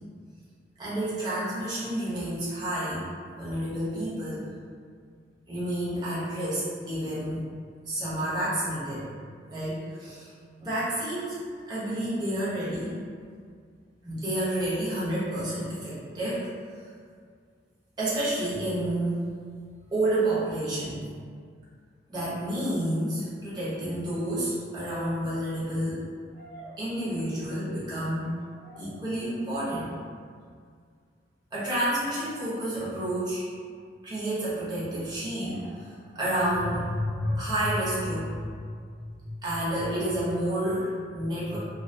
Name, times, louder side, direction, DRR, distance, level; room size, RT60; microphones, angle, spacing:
voice 1, 0.8-3.1 3.3-4.5 5.5-7.4 7.8-9.1 9.5-10.3 10.6-11.4 11.7-13.0 14.0-16.5 16.8-16.9 18.0-19.3 19.9-21.0 22.1-26.0 26.8-28.4 28.8-29.9 31.5-33.4 34.0-38.4 38.7-41.6, right 1 dB, 25° right, -9 dB, 0.7 m, -30 dB
sound 1, 23.9-24.0 26.3-27.6 28.0-29.1 31.7-32.0 35.4-38.9 39.6-40.1, right 1 dB, 70° left, 0.9 m, -52 dB
2.3 x 2.2 x 2.5 m, 2.1 s
head